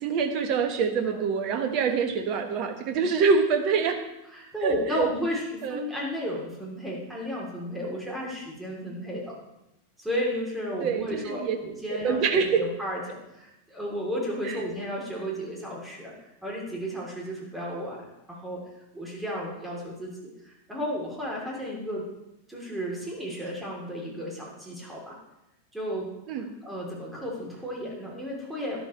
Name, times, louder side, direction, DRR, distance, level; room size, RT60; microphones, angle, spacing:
voice 1, 0.0-4.0 4.6-5.1 5.6-5.8 10.8-11.6 12.0-12.6 26.3-26.5, right 5 dB, 40° right, 6 dB, 1.4 m, -25 dB
voice 2, 4.3-9.3 10.0-13.0 13.3-16.1 16.4-18.6 18.9-20.1 20.4-22.1 22.5-25.2 25.7-26.1 26.3-28.8, equal, 5° right, -3 dB, 3.3 m, -33 dB
12.0 x 11.5 x 3.2 m, 0.89 s
figure-of-eight pair, 90°, 0 cm